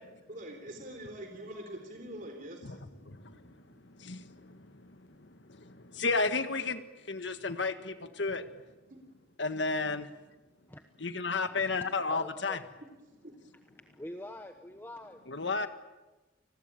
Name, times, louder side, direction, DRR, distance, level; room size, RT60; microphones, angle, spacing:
voice 1, 0.0-4.0 8.9-9.0 13.0-13.8, right 1 dB, 45° right, 4 dB, 4.0 m, -46 dB
voice 2, 3.0-3.6 3.8-8.5 9.4-10.1 11.0-12.6 15.3-15.7, left 3 dB, 70° left, 9 dB, 1.7 m, -33 dB
voice 3, 11.5-12.6 13.8-15.2, left 1 dB, 10° left, 6 dB, 1.1 m, -45 dB
30.0 x 20.5 x 9.0 m, 1.1 s
head